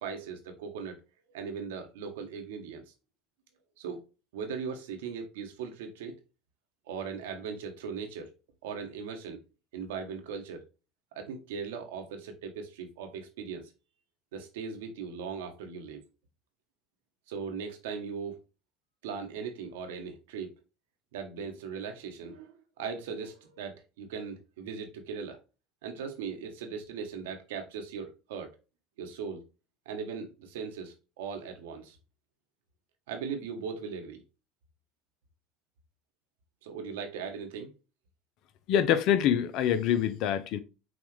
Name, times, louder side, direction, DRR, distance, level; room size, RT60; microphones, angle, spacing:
voice 1, 0.0-1.0 1.3-2.8 3.8-4.0 4.3-6.1 6.9-8.3 8.6-9.4 9.7-10.7 11.1-13.6 14.3-16.0 17.3-18.4 19.0-20.5 21.1-25.4 25.8-28.5 29.0-29.4 29.9-32.0 33.1-34.2 36.6-37.7, right 6 dB, 80° right, 1.0 m, -39 dB
voice 2, 38.7-40.6, left 9 dB, 60° left, 0.5 m, -25 dB
6.0 x 2.4 x 3.1 m
hypercardioid pair, 75°, 0 cm